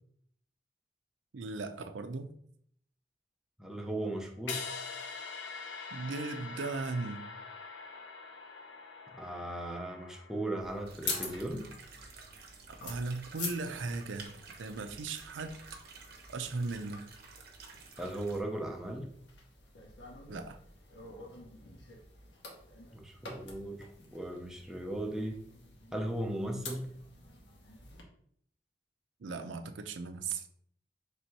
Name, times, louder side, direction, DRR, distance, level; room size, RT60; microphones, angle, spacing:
voice 1, 1.3-2.3 5.9-7.3 12.7-14.3 14.6-15.5 16.3-17.0 20.3-20.6 29.2-30.5, right 3 dB, 90° right, 7 dB, 0.5 m, -37 dB
voice 2, 3.6-4.7 9.1-11.7 18.0-19.1 22.9-25.4 25.9-26.9, right 1 dB, 5° right, 0 dB, 0.6 m, -37 dB
sound 1, 4.5-10.6, left 5 dB, 90° left, 0.5 m, -44 dB
sound 2, 10.6-28.0, left 3 dB, 75° left, 0.9 m, -47 dB
sound 3, 10.9-18.4, right 4 dB, 55° right, 0.8 m, -52 dB
3.4 x 2.7 x 4.5 m, 0.66 s
head